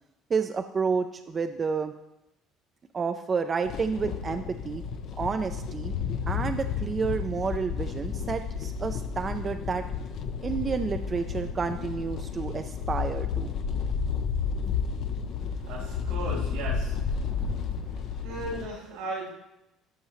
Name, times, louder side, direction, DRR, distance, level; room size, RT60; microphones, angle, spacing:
voice 1, 0.3-1.9 2.9-4.8 5.2-5.9 6.3-9.8 10.4-13.5, right 5 dB, 35° right, 7 dB, 0.4 m, -30 dB
sound 1, 3.6-18.7, left 6 dB, 60° left, 0.6 m, -32 dB
voice 2, 15.6-17.6 18.2-19.3, right 2 dB, 90° right, -4 dB, 3.0 m, -37 dB
13.0 x 5.5 x 3.0 m, 0.90 s
supercardioid pair, 75°, 0 cm